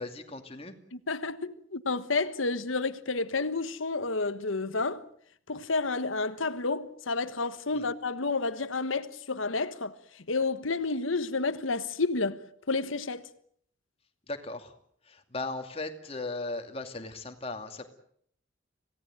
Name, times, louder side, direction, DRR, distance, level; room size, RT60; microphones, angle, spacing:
voice 1, 0.0-0.7 14.3-14.7 15.1-17.9, left 2 dB, 30° left, 2.5 m, -37 dB
voice 2, 0.9-5.1 5.5-12.4 12.7-13.3, left 3 dB, 90° left, 1.3 m, -30 dB
26.5 x 17.5 x 9.1 m
head